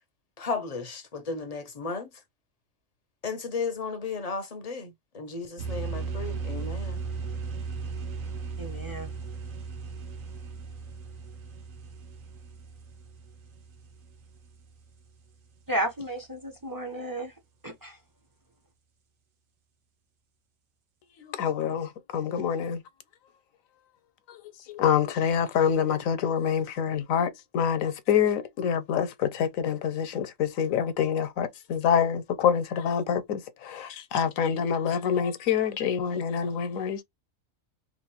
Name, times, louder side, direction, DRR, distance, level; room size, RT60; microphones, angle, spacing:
voice 1, 0.4-2.2 3.2-7.0, left 4 dB, 45° left, 0.5 m, -34 dB
sound 1, 5.6-15.1, right 4 dB, 75° right, 1.2 m, -37 dB
voice 2, 8.6-9.1 15.7-17.3 17.6-18.0, right 1 dB, 25° right, 0.5 m, -33 dB
voice 3, 21.2-22.8 24.3-24.4 24.7-37.0, left 8 dB, 80° left, 1.1 m, -26 dB
2.9 x 2.5 x 4.2 m
omnidirectional pair, 1.4 m